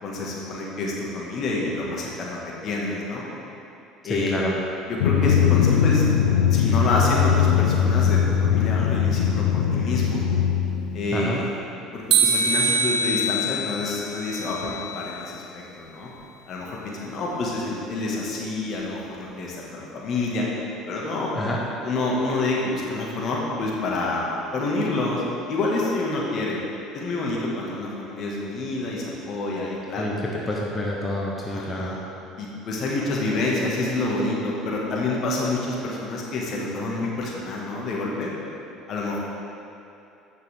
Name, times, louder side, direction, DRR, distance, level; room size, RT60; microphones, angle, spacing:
voice 1, 0.0-3.3 4.0-4.4 4.9-6.0 6.5-10.2 10.9-11.5 11.9-16.1 16.5-20.5 20.8-21.3 21.8-25.2 25.5-26.6 26.9-30.1 30.3-30.5 31.5-32.0 32.4-38.3 38.9-39.2, left 2 dB, 50° left, -3 dB, 1.8 m, -28 dB
voice 2, 4.0-4.5 11.1-11.4 21.3-21.6 29.9-30.1 30.5-31.9, left 1 dB, 15° left, -3 dB, 1.0 m, -28 dB
Drum, 5.0-11.5, left 8 dB, 90° left, 0.4 m, -21 dB
sound 1, 12.1-15.2, right 3 dB, 65° right, 0.8 m, -24 dB
9.0 x 6.5 x 3.6 m, 2.8 s
hypercardioid pair, 75°, 0 cm